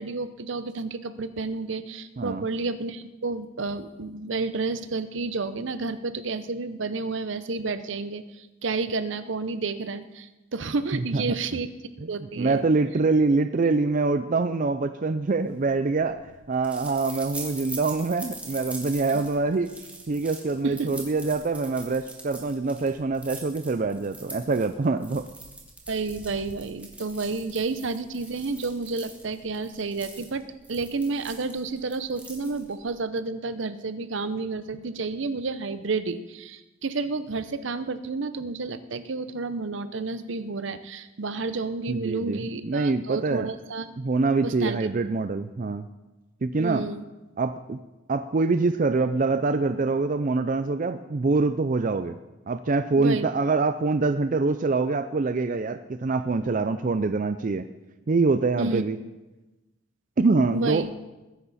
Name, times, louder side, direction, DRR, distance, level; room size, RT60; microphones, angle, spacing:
voice 1, 0.0-11.7 12.0-12.6 19.1-19.2 20.6-20.9 25.9-43.9 44.4-44.8 46.6-47.0 53.0-53.3 58.6-58.8 60.5-60.9, right 3 dB, 65° right, 12 dB, 0.8 m, -30 dB
voice 2, 12.3-16.2 16.5-19.7 20.1-25.3 41.9-43.5 44.0-45.9 46.4-46.9 47.4-47.8 48.1-52.2 52.5-57.7 58.1-59.0 60.2-60.8, right 3 dB, 40° right, 9 dB, 0.4 m, -25 dB
sound 1, 15.4-32.9, right 2 dB, 5° right, 2.1 m, -43 dB
21.0 x 10.5 x 4.2 m, 1.1 s
head